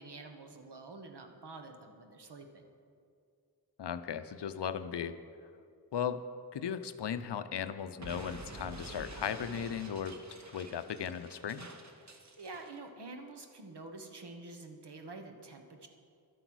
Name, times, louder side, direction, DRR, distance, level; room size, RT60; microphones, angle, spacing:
voice 1, 0.0-2.7 12.0-15.9, right 3 dB, 75° right, 5 dB, 1.2 m, -48 dB
voice 2, 3.8-5.2 5.9-6.2 6.5-10.2 10.5-11.7, left 8 dB, 85° left, 12 dB, 0.6 m, -37 dB
Explosion, 8.0-12.8, right 2 dB, 45° right, 0.9 m, -48 dB
11.5 x 8.0 x 6.2 m, 2.3 s
wide cardioid pair, 85°, 41 cm